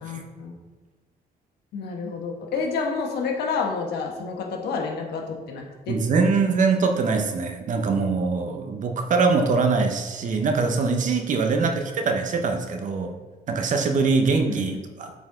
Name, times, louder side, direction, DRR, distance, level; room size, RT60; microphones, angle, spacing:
voice 1, 0.0-0.5 1.7-6.0 14.5-14.6, left 5 dB, 85° left, 1 dB, 1.2 m, -29 dB
voice 2, 5.9-13.1 13.5-14.7 15.0-15.1, right 4 dB, 50° right, 5 dB, 0.8 m, -23 dB
8.2 x 4.3 x 3.8 m, 1.3 s
cardioid pair, 130°, 16 cm